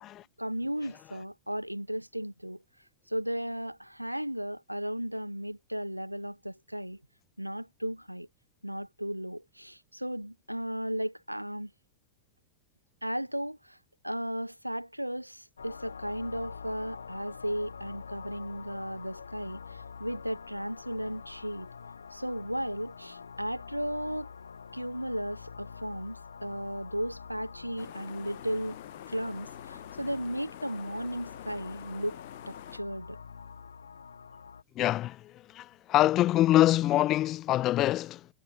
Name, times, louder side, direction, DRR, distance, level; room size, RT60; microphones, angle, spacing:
voice 1, 0.4-2.6 3.1-7.0 7.4-8.3 8.6-11.7 13.0-13.8 14.0-21.7 22.1-24.3 24.7-28.8 29.1-32.2 32.5-33.2, equal, 90° right, 1.7 m, -35 dB
sound 1, 15.6-34.6, left 6 dB, 75° left, 3.5 m, -46 dB
sound 2, 27.8-32.8, left 18 dB, 50° left, 2.3 m, -47 dB
voice 2, 34.8-38.3, left 14 dB, 35° left, 0.4 m, -25 dB
figure-of-eight pair, 90°, 0 cm